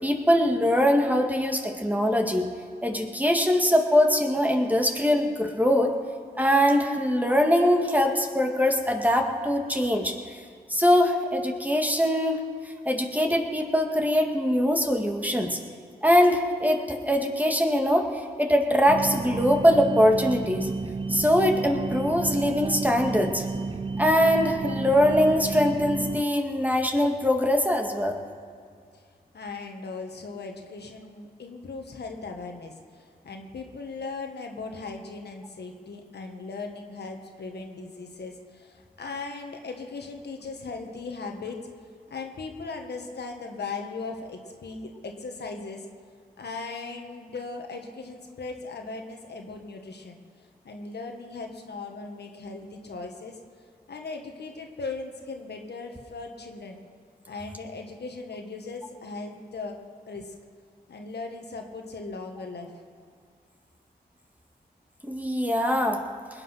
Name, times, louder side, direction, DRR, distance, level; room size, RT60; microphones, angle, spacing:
voice 1, 0.0-2.5 2.8-5.9 6.4-10.4 10.7-12.4 12.9-15.6 16.0-20.7 21.1-23.5 24.0-28.2 65.0-66.0, equal, 10° right, 3 dB, 2.1 m, -22 dB
sound 1, 18.9-26.2, right 3 dB, 30° right, 0.4 m, -32 dB
voice 2, 29.3-41.6 42.1-45.9 46.4-50.2 50.6-53.4 53.9-56.8 57.3-59.8 60.1-60.3 60.9-62.7, left 3 dB, 75° left, 3 dB, 1.7 m, -38 dB
20.0 x 9.0 x 5.8 m, 2.2 s
cardioid pair, 45°, 17 cm